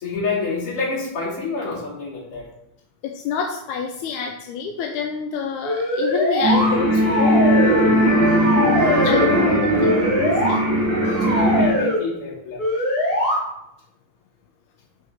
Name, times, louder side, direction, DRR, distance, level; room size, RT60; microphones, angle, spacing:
voice 1, 0.0-2.5 6.6-7.5 8.8-10.1 10.7-10.8 11.1-12.6, left 3 dB, 50° left, -7 dB, 3.4 m, -28 dB
voice 2, 3.0-7.4 8.6-9.6 10.2-10.6, left 7 dB, 80° left, 3 dB, 1.9 m, -27 dB
sound 1, 5.6-6.7 7.0-8.0 8.2-9.3 9.8-10.6 11.0-12.0 12.6-13.4, left 1 dB, 30° left, 2.3 m, -22 dB
sound 2, 6.4-11.7, right 1 dB, 35° right, 2.1 m, -19 dB
6.6 x 6.3 x 4.0 m, 0.83 s
omnidirectional pair, 3.6 m